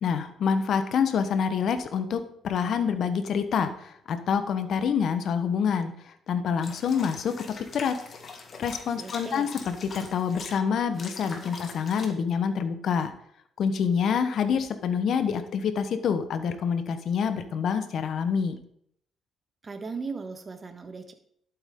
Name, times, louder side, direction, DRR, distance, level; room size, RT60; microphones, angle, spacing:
voice 1, 0.0-7.4 7.7-8.0 8.6-13.1 13.6-18.6, left 6 dB, 60° left, 10 dB, 1.1 m, -27 dB
sound 1, 6.6-10.5 10.9-12.1, left 4 dB, 45° left, 1.9 m, -42 dB
voice 2, 9.0-9.5 19.6-21.1, right 4 dB, 30° right, 7 dB, 1.5 m, -37 dB
11.5 x 8.2 x 3.8 m, 0.68 s
cardioid pair, 100°, 0 cm